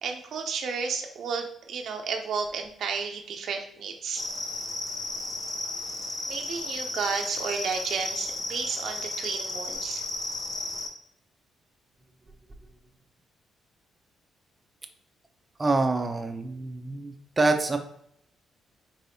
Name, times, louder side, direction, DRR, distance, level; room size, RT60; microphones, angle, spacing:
voice 1, 0.0-4.2 6.3-10.0, right 5 dB, 65° right, 3 dB, 0.5 m, -32 dB
sound 1, 4.1-10.9, left 2 dB, 50° left, 1.0 m, -34 dB
voice 2, 15.6-17.8, right 3 dB, 25° right, 5 dB, 0.6 m, -26 dB
4.6 x 3.3 x 2.7 m, 0.71 s
cardioid pair, 90°, 0 cm